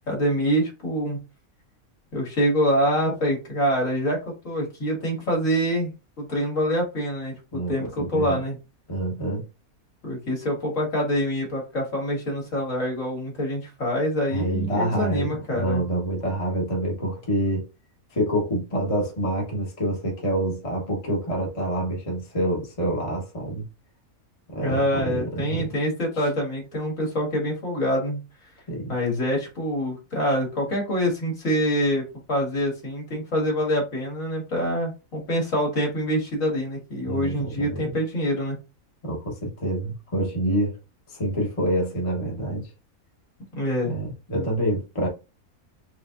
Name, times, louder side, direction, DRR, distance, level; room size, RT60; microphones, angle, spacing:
voice 1, 0.1-1.2 2.1-8.6 10.0-15.8 24.6-28.2 28.9-38.6 43.5-43.9 44.3-44.5, equal, 60° left, 2.3 m, -25 dB
voice 2, 7.5-8.4 8.9-9.4 14.3-17.7 18.1-23.6 24.5-25.7 26.1-26.3 28.7-28.9 37.0-38.0 39.0-40.8 41.1-42.7 43.8-45.1, right 1 dB, 25° left, 1.2 m, -27 dB
4.7 x 3.4 x 2.5 m
omnidirectional pair, 1.5 m